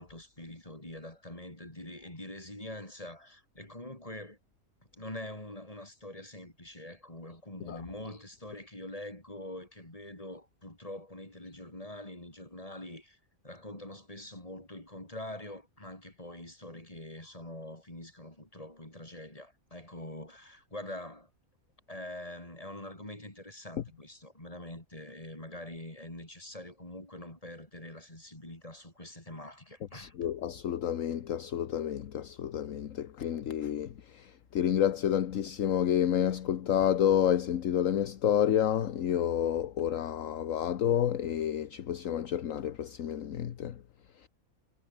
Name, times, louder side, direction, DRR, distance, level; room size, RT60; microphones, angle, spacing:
voice 1, 0.0-4.4 4.9-13.2 13.4-21.3 21.9-30.1, left 1 dB, 25° left, 5.4 m, -44 dB
voice 2, 29.9-43.8 44.2-44.3, left 10 dB, 65° left, 1.3 m, -29 dB
omnidirectional pair, 1.5 m